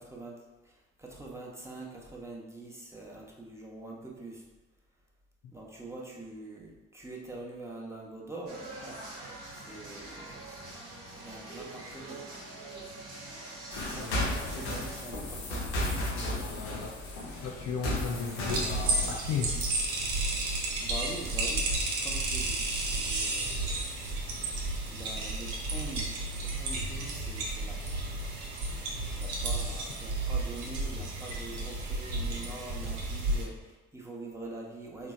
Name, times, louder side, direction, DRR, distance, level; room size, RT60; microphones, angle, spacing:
voice 1, 0.0-4.4 5.5-10.6 11.2-12.3 13.8-15.7 20.8-24.1 24.9-28.0 29.2-35.1, right 2 dB, 10° right, -3 dB, 0.9 m, -44 dB
sound 1, 8.5-15.1, right 2 dB, 45° right, 1.1 m, -44 dB
sound 2, 13.7-19.1, left 1 dB, 75° left, 0.8 m, -34 dB
voice 2, 14.0-14.4 16.1-17.0 17.4-19.8, left 5 dB, 45° left, 1 dB, 0.5 m, -36 dB
sound 3, 18.5-33.4, right 2 dB, 70° right, 0.8 m, -32 dB
3.9 x 3.0 x 2.3 m, 1.2 s
figure-of-eight pair, 45°, 36 cm